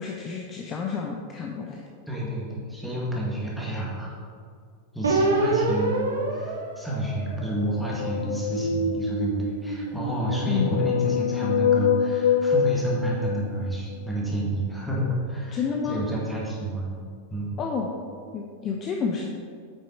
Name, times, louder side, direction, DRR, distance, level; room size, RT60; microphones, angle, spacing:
voice 1, 0.0-1.9 10.5-10.9 15.5-16.0 17.6-17.9 18.3-19.3, left 6 dB, 30° left, 1 dB, 0.8 m, -30 dB
voice 2, 2.1-4.2 4.9-15.6 15.9-16.9 17.3-17.5, right 1 dB, ahead, -5 dB, 1.9 m, -29 dB
sound 1, 5.0-7.7 8.3-10.8, right 2 dB, 70° right, 1.2 m, -27 dB
sound 2, 7.6-9.2 10.1-13.9, left 8 dB, 55° left, 0.3 m, -26 dB
9.0 x 6.2 x 4.5 m, 2.2 s
figure-of-eight pair, 90°, 0 cm